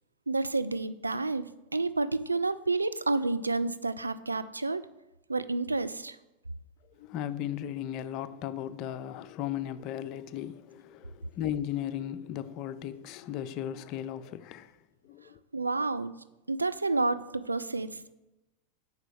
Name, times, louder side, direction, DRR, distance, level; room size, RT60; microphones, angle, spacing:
voice 1, 0.3-1.4 1.7-4.8 5.3-6.2 15.5-16.1 16.5-18.1, right 3 dB, 80° right, 0.3 m, -29 dB
voice 2, 7.0-14.8 15.0-15.4, left 11 dB, 40° left, 0.4 m, -36 dB
5.4 x 5.0 x 6.2 m
figure-of-eight pair, 90°, 0 cm